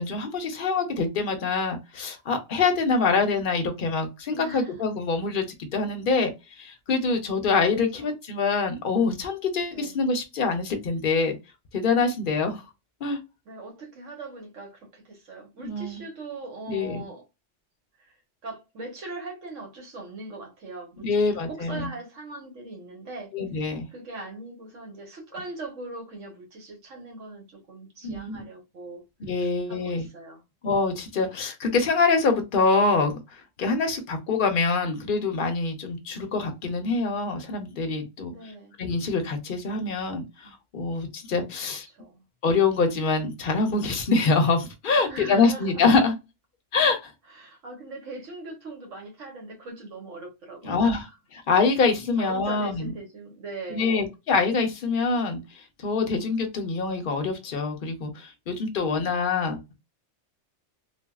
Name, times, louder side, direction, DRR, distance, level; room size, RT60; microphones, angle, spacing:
voice 1, 0.0-6.3 6.6-11.4 11.7-12.6 13.0-13.2 15.6-16.0 16.7-17.1 21.0-21.9 23.3-23.9 28.0-28.4 29.2-30.1 30.6-38.3 38.8-41.9 42.4-46.2 46.7-47.1 50.6-51.0 51.3-52.9 53.7-55.4 55.8-59.6, left 4 dB, 50° left, 0.8 m, -25 dB
voice 2, 4.3-4.9 7.9-8.1 9.7-10.0 13.4-17.2 18.0-18.1 18.4-23.3 23.9-29.0 29.4-30.4 38.3-38.8 41.6-42.2 45.0-45.8 47.3-51.1 52.2-54.0, right 2 dB, 80° right, 1.4 m, -40 dB
3.3 x 2.2 x 2.3 m
omnidirectional pair, 1.3 m